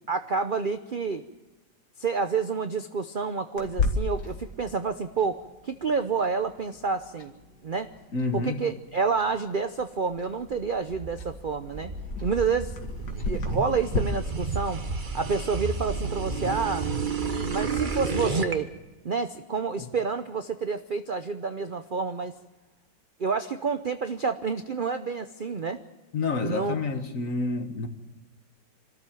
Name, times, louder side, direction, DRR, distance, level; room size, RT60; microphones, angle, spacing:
voice 1, 0.1-1.2 2.0-7.3 7.6-7.9 8.3-11.9 12.2-12.8 13.1-14.8 15.1-16.9 17.5-18.7 19.0-22.3 23.2-25.8 26.4-26.8, right 5 dB, 60° right, 0.5 m, -29 dB
Clock, 3.6-14.0, left 4 dB, 65° left, 2.6 m, -36 dB
voice 2, 8.1-8.6 19.8-19.9 26.1-27.9, left 3 dB, 50° left, 1.8 m, -29 dB
sound 1, 10.5-18.5, right 4 dB, 30° right, 1.2 m, -31 dB
26.0 x 13.5 x 7.5 m
omnidirectional pair, 1.9 m